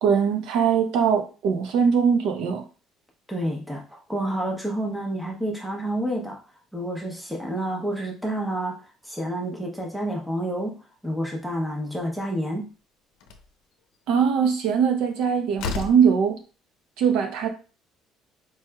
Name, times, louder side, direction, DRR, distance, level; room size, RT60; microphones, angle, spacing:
voice 1, 0.0-2.6 14.1-16.4 17.0-17.5, right 7 dB, 70° right, 5 dB, 0.7 m, -21 dB
voice 2, 3.3-6.4 6.7-8.8 9.0-12.6, right 1 dB, ahead, -1 dB, 0.8 m, -29 dB
Slam, 13.2-13.5 15.1-15.2 15.6-16.1, left 5 dB, 85° left, 0.6 m, -31 dB
4.5 x 3.1 x 2.3 m, 0.34 s
cardioid pair, 170°, 0 cm